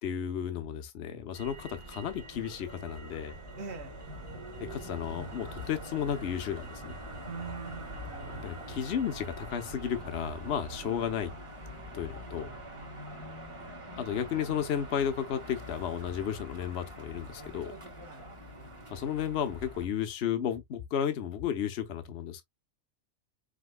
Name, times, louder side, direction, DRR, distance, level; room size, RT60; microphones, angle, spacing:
voice 1, 0.0-3.3 4.6-7.0 8.3-11.3 11.9-12.5 14.0-17.7 18.9-22.4, left 8 dB, 60° left, 1.1 m, -33 dB
Motor vehicle (road), 1.3-19.8, right 1 dB, 25° right, 1.5 m, -44 dB
voice 2, 3.6-3.9 7.2-8.7 10.7-11.0 12.3-12.6 18.0-18.3, right 5 dB, 60° right, 1.3 m, -44 dB
5.2 x 3.5 x 2.2 m
omnidirectional pair, 1.3 m